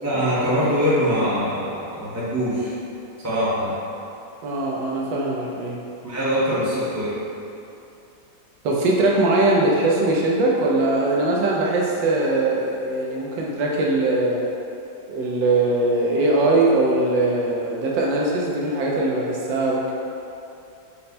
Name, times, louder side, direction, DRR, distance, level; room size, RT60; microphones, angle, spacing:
voice 1, 0.0-2.7 3.2-3.7 6.0-7.1, equal, 15° right, -11 dB, 0.7 m, -23 dB
voice 2, 4.4-5.8 8.6-14.5 15.1-19.9, right 2 dB, 75° right, -3 dB, 1.2 m, -21 dB
5.4 x 2.1 x 4.1 m, 2.7 s
omnidirectional pair, 2.2 m